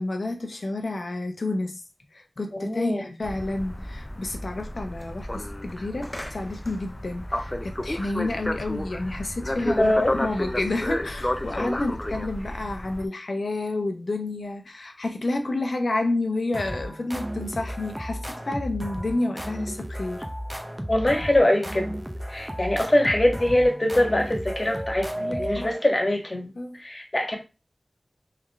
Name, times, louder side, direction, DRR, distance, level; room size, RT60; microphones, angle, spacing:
voice 1, 0.0-1.8 2.1-9.9 10.2-20.3 25.2-25.7 26.6-26.8, left 2 dB, 80° left, 0.8 m, -30 dB
voice 2, 2.5-3.0 9.6-10.1 11.6-11.7 20.9-22.0 22.3-26.5 26.7-27.4, left 1 dB, 45° left, 1.4 m, -23 dB
sound 1, 3.2-13.1, left 1 dB, 25° left, 0.4 m, -32 dB
sound 2, 16.5-26.0, equal, 10° right, 0.7 m, -34 dB
3.5 x 3.3 x 3.4 m
wide cardioid pair, 50°, 0 cm